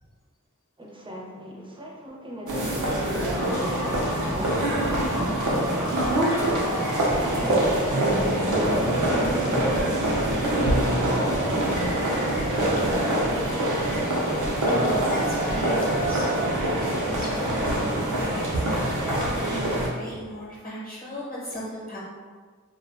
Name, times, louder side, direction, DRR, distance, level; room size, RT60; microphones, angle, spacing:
voice 1, 0.8-5.1 5.5-7.0 7.2-9.6, equal, 15° right, -2 dB, 0.5 m, -38 dB
sound 1, 2.5-19.9, right 1 dB, 85° right, 0.5 m, -24 dB
sound 2, 3.0-9.0, left 1 dB, 60° left, 0.7 m, -34 dB
voice 2, 11.4-13.2 14.6-22.0, equal, 30° left, -6 dB, 0.9 m, -38 dB
2.4 x 2.1 x 2.4 m, 1.5 s
wide cardioid pair, 45°, 30 cm